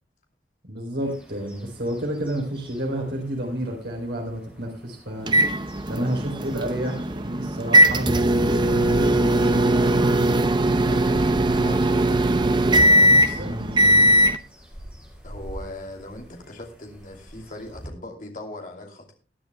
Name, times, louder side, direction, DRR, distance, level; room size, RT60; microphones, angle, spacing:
voice 1, 0.6-5.3 5.9-9.8 13.0-14.1, right 1 dB, 70° right, 3.8 m, -30 dB
sound 1, 1.0-17.9, equal, 5° right, 5.9 m, -45 dB
sound 2, 5.3-14.4, right 1 dB, 25° right, 0.7 m, -19 dB
voice 2, 10.9-12.4 15.2-19.1, left 1 dB, 45° left, 2.7 m, -39 dB
20.5 x 10.5 x 2.2 m
head